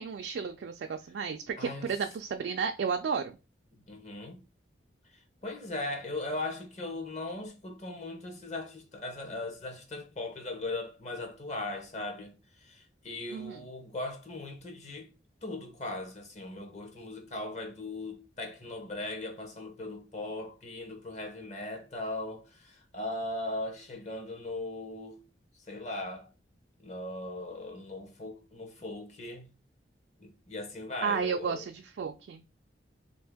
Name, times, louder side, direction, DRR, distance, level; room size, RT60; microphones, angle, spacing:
voice 1, 0.0-3.4 13.3-13.6 31.0-32.4, right 6 dB, 65° right, 0.3 m, -33 dB
voice 2, 1.6-1.9 3.9-4.4 5.1-15.1 15.4-25.2 25.7-26.3 26.8-29.4 30.2-31.7, left 2 dB, 40° left, 0.7 m, -39 dB
2.8 x 2.7 x 3.4 m
head